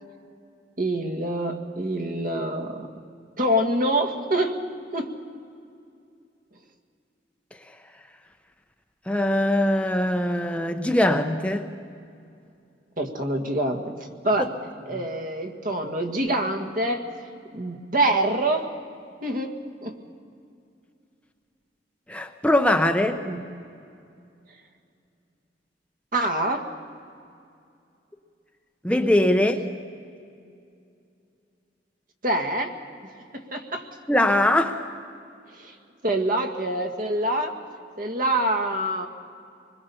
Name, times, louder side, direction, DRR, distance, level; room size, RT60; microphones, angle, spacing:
voice 1, 0.8-2.9 3.4-4.6 4.9-5.1 13.0-14.5 14.9-17.1 17.5-18.7 19.2-19.9 23.2-23.4 26.1-26.7 32.2-32.7 33.3-33.9 35.5-35.7 36.0-37.6 38.0-39.1, right 1 dB, 50° right, 5 dB, 1.8 m, -26 dB
voice 2, 9.1-11.7 22.1-23.2 28.8-29.7 34.1-34.8, left 1 dB, 5° left, 6 dB, 0.8 m, -21 dB
25.0 x 21.0 x 7.0 m, 2.5 s
head